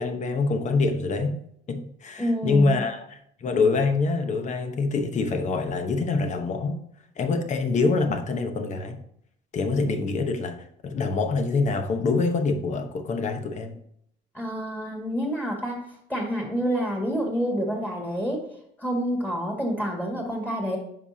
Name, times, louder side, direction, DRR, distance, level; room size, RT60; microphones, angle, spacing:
voice 1, 0.0-1.4 1.7-6.8 7.2-9.0 9.5-10.6 10.8-13.8, left 3 dB, 45° left, 1.0 m, -25 dB
voice 2, 2.2-2.8 14.3-15.8 16.1-18.4 18.8-20.8, equal, 10° left, 2.2 m, -28 dB
9.7 x 5.8 x 2.8 m
cardioid pair, 110°, 17 cm